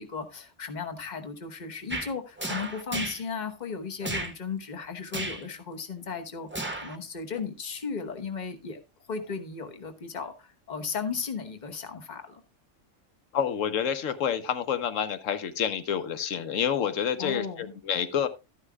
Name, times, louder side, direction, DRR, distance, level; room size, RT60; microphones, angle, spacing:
voice 1, 0.0-8.8 9.1-12.4 17.2-17.7, left 5 dB, 40° left, 7 dB, 1.1 m, -36 dB
sound 1, 1.9-2.1 2.4-3.2 4.0-4.3 5.1-5.4 6.5-7.0 7.4-7.5, right 2 dB, 10° right, 0.8 m, -33 dB
voice 2, 13.3-18.3, left 8 dB, 90° left, 11 dB, 1.2 m, -28 dB
12.5 x 9.7 x 2.3 m, 0.26 s
omnidirectional pair, 1.3 m